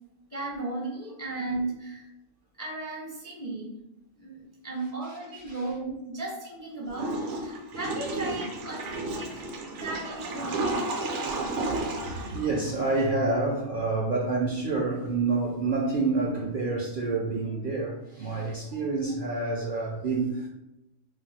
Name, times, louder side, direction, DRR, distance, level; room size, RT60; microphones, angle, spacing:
voice 1, 0.3-2.1 2.6-3.8 4.2-9.5 9.8-11.3, right 2 dB, 20° left, 0.5 m, -36 dB
voice 2, 5.0-5.7 10.3-10.5 10.9-11.9 12.2-20.5, right 3 dB, 60° right, 0.6 m, -29 dB
Water / Toilet flush, 6.9-13.1, right 2 dB, 75° right, 0.9 m, -32 dB
2.4 x 2.2 x 4.0 m
omnidirectional pair, 1.3 m